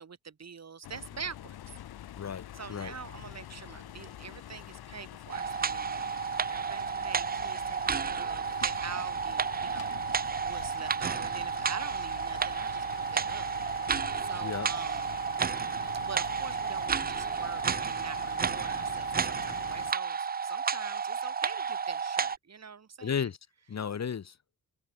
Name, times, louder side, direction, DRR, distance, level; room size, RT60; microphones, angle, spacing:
voice 1, 0.0-1.8 2.5-13.5 14.2-15.1 16.0-23.3, right 6 dB, 40° right, 5.6 m, -45 dB
sound 1, 0.8-19.9, left 12 dB, 70° left, 2.7 m, -46 dB
voice 2, 2.2-2.9 14.4-14.7 23.0-23.4 23.7-24.3, left 7 dB, 45° left, 1.9 m, -34 dB
sound 2, 5.3-22.4, right 6 dB, 25° right, 0.6 m, -32 dB
cardioid pair, 80°, 38 cm